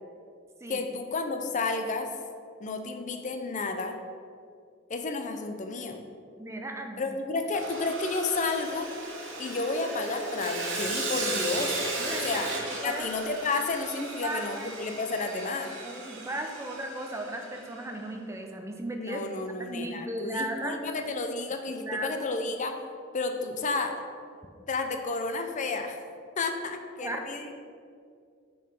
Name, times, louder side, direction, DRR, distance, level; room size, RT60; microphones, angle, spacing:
voice 1, 0.7-2.1 2.6-4.0 4.9-6.0 7.0-8.9 9.4-11.8 12.2-12.5 12.8-15.7 19.0-22.8 23.1-24.0 24.7-26.0 26.4-27.6, left 3 dB, 40° left, 6 dB, 0.5 m, -31 dB
voice 2, 6.4-7.0 12.0-13.1 14.2-14.7 15.8-19.2 19.6-20.8 21.8-22.1 27.0-27.2, right 1 dB, 15° right, 3 dB, 0.5 m, -36 dB
Sawing, 7.5-17.8, right 2 dB, 65° right, 1.3 m, -36 dB
6.3 x 4.6 x 5.3 m, 2.3 s
head